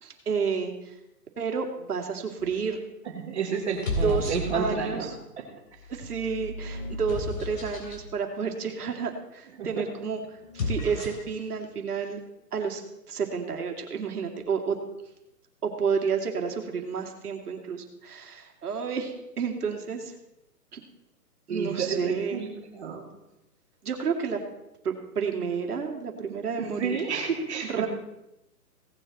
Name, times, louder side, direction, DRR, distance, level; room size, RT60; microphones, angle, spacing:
voice 1, 0.0-0.9 1.4-2.8 4.0-5.2 5.9-10.2 10.5-12.2 12.5-12.8 13.1-14.8 15.6-20.1 20.7-20.8 21.5-22.4 23.8-24.4 24.8-27.0 27.6-27.9, right 6 dB, 70° right, 3 dB, 2.4 m, -30 dB
sound 1, 2.4-2.8 3.6-5.0 5.7-8.0 10.4-11.4, left 2 dB, 55° left, 3.4 m, -33 dB
voice 2, 3.2-5.4 9.6-9.8 21.5-22.5 22.7-23.1 26.6-27.9, right 6 dB, 45° right, 1 dB, 2.3 m, -31 dB
17.5 x 7.3 x 4.2 m, 0.89 s
hypercardioid pair, 170°, 48 cm